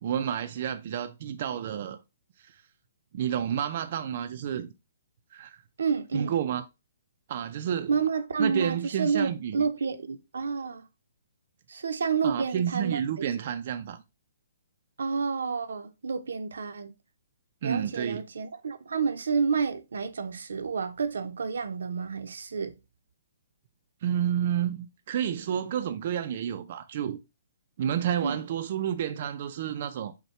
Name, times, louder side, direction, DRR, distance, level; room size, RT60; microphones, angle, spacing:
voice 1, 0.0-2.0 2.4-2.6 3.1-4.7 5.3-5.6 6.1-6.6 7.3-8.0 8.4-9.7 12.2-14.0 17.6-18.2 24.0-27.2 27.8-30.1, right 9 dB, 45° right, 0.4 m, -30 dB
voice 2, 5.8-6.4 7.9-10.8 11.7-13.3 15.0-16.9 17.6-22.8 28.2-28.4, right 5 dB, 85° right, 0.7 m, -29 dB
5.5 x 2.2 x 4.3 m
hypercardioid pair, 165°, 0 cm